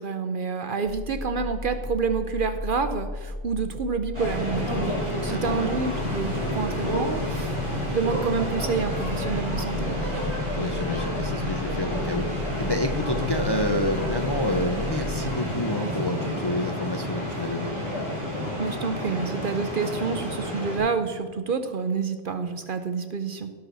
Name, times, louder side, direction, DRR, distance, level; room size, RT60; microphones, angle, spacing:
voice 1, 0.0-10.0 18.6-23.5, right 5 dB, 55° right, 9 dB, 0.7 m, -28 dB
sound 1, 0.8-15.3, left 1 dB, 80° right, 2.2 m, -36 dB
sound 2, 4.1-20.8, left 1 dB, 25° right, 3.9 m, -30 dB
voice 2, 5.3-5.7 10.6-12.3 12.6-17.7, left 1 dB, 30° left, 4 dB, 0.5 m, -28 dB
18.0 x 6.1 x 4.0 m, 1.5 s
omnidirectional pair, 1.2 m